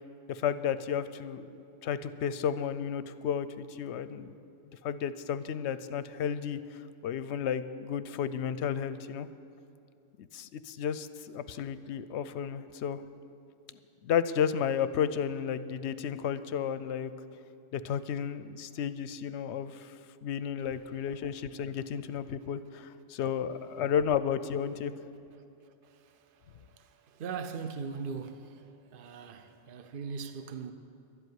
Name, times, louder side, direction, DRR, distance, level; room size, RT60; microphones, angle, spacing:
voice 1, 0.3-1.5 1.8-4.3 4.8-9.3 10.2-13.0 14.0-17.1 17.7-19.9 20.2-24.9, left 8 dB, 70° left, 0.8 m, -32 dB
voice 2, 26.8-28.6 28.9-30.7, right 5 dB, 50° right, 0.8 m, -39 dB
12.0 x 8.1 x 9.4 m
omnidirectional pair, 1.3 m